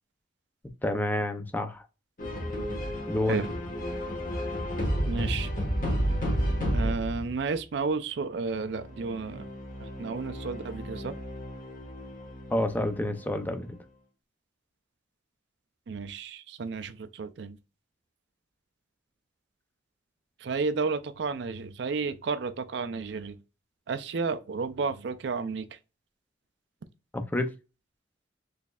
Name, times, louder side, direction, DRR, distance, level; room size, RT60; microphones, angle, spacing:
voice 1, 0.8-1.8 3.1-3.3 12.5-13.7 27.1-27.5, left 1 dB, 10° left, 0.4 m, -28 dB
sound 1, 2.2-7.4 8.6-13.5, equal, 45° left, 1.3 m, -32 dB
voice 2, 5.1-5.5 6.7-9.5 10.0-11.2 15.9-17.6 20.4-23.3 23.9-25.7, right 4 dB, 60° right, 0.4 m, -32 dB
4.1 x 3.2 x 2.3 m
head